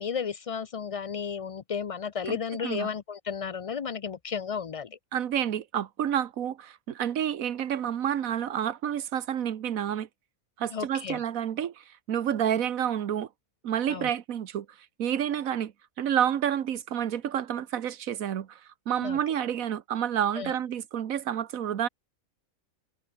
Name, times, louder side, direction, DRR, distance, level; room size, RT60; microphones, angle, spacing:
voice 1, 0.0-5.0 10.7-11.2 13.9-14.1 19.0-19.2 20.4-20.5, left 6 dB, 60° left, 0.3 m, -33 dB
voice 2, 2.3-2.9 5.1-10.1 10.6-13.3 13.6-14.7 15.0-15.7 16.0-18.6 18.9-21.9, right 9 dB, 75° right, 1.4 m, -29 dB
omnidirectional pair, 1.5 m